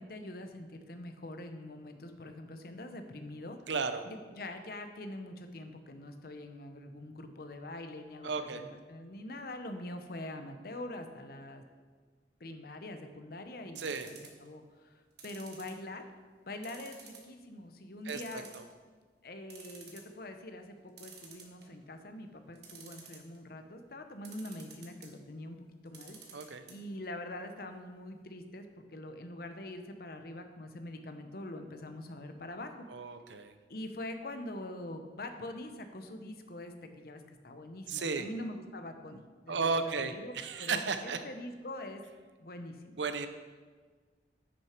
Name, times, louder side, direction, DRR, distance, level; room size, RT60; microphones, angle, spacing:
voice 1, 0.0-3.6 4.1-11.6 12.4-16.0 16.5-18.5 19.2-32.9 33.7-42.0 42.4-43.0, left 1 dB, 55° left, 7 dB, 0.8 m, -44 dB
voice 2, 3.7-4.1 8.2-8.6 13.8-14.1 18.1-18.4 26.3-26.6 32.9-33.5 37.9-38.3 39.5-41.2 43.0-43.3, right 4 dB, 85° right, 9 dB, 0.7 m, -34 dB
sound 1, 13.7-14.5 15.2-16.2 16.6-17.3 17.7-17.8 18.1-18.9 19.2-19.3 19.5-20.1 21.0-21.8 22.5-23.4 24.2-25.1 25.9-26.7 27.0-27.1 27.4-27.5, right 6 dB, 65° right, 1.4 m, -51 dB
9.8 x 6.5 x 4.5 m, 1.5 s
head